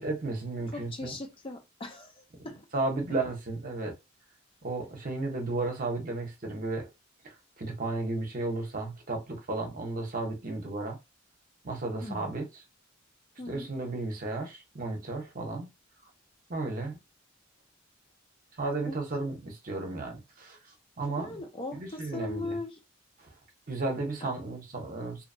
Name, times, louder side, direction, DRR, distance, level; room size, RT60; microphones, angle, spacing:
voice 1, 0.0-1.2 2.7-3.9 4.6-6.9 7.2-11.0 11.6-12.5 13.5-15.7 16.5-17.0 18.6-20.6 21.0-21.4 21.7-22.6 23.2-23.3 23.7-25.2, right 2 dB, 45° right, 0.8 m, -33 dB
voice 2, 0.7-2.7 12.0-12.3 13.4-13.7 18.9-19.0 21.1-22.8 24.2-24.3, left 2 dB, 30° left, 0.5 m, -39 dB
2.6 x 2.2 x 2.6 m
head